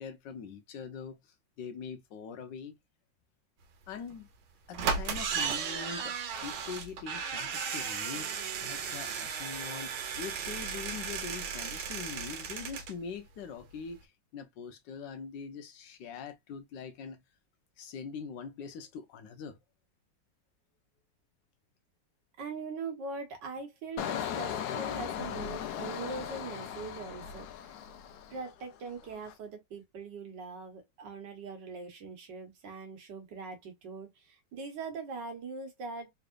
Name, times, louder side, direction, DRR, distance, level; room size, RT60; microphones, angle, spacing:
voice 1, 0.0-2.8 3.9-4.3 4.7-8.3 8.6-17.2 17.8-19.6, left 6 dB, 70° left, 1.2 m, -43 dB
sound 1, 4.1-4.2 4.7-13.0 13.3-13.4 13.6-13.7, right 6 dB, 90° right, 1.5 m, -35 dB
voice 2, 22.4-27.8 28.3-36.1, right 4 dB, 65° right, 1.6 m, -42 dB
Engine, 24.0-28.6 29.0-29.3, left 9 dB, 85° left, 0.8 m, -37 dB
3.6 x 3.2 x 2.4 m
omnidirectional pair, 2.2 m